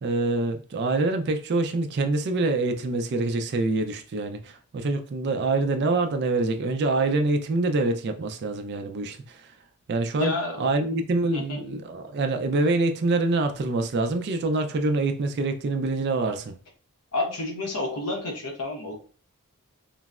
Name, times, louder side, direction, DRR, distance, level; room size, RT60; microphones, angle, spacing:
voice 1, 0.0-9.5 9.9-16.5, right 2 dB, 50° right, 0.4 m, -25 dB
voice 2, 10.2-10.7 11.3-11.6 17.1-18.9, left 2 dB, 90° left, 0.9 m, -30 dB
3.8 x 2.0 x 2.3 m
head